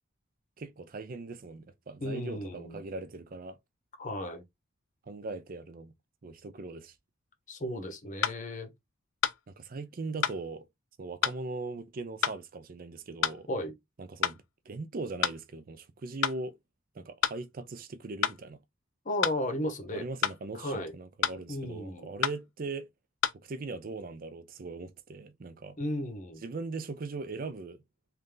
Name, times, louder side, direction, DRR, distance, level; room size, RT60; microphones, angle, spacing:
voice 1, 0.6-3.6 5.1-5.9 6.2-6.9 9.5-10.7 11.0-13.5 14.0-16.6 16.9-18.6 19.9-22.9 23.3-25.8 26.4-27.8, right 3 dB, 45° right, 0.5 m, -40 dB
voice 2, 2.0-2.8 4.0-4.4 7.5-8.7 13.5-13.7 19.0-20.0 20.5-20.9 21.5-22.1 25.8-26.4, left 1 dB, 40° left, 0.8 m, -34 dB
sound 1, 8.2-8.4 9.2-9.4 10.2-10.4 11.2-11.4 12.2-12.4 13.2-13.4 14.2-14.4 15.2-15.4 16.2-16.4 17.2-17.4 18.2-18.4 19.2-19.4 20.2-20.4 21.2-21.4 22.2-22.4 23.2-23.3, left 9 dB, 80° left, 0.4 m, -28 dB
3.3 x 2.6 x 3.7 m
head